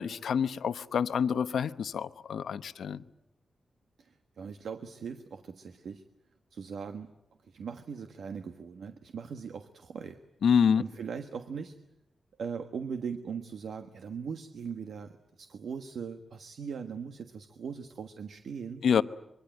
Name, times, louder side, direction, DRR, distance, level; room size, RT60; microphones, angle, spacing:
voice 1, 0.0-3.0 10.4-10.8 18.8-19.0, left 7 dB, 90° left, 13 dB, 0.9 m, -27 dB
voice 2, 4.0-6.0 6.5-7.1 7.4-10.2 10.8-11.8 12.4-18.9, right 6 dB, 80° right, 8 dB, 1.4 m, -40 dB
25.0 x 23.5 x 9.2 m, 0.86 s
wide cardioid pair, 150°, 0 cm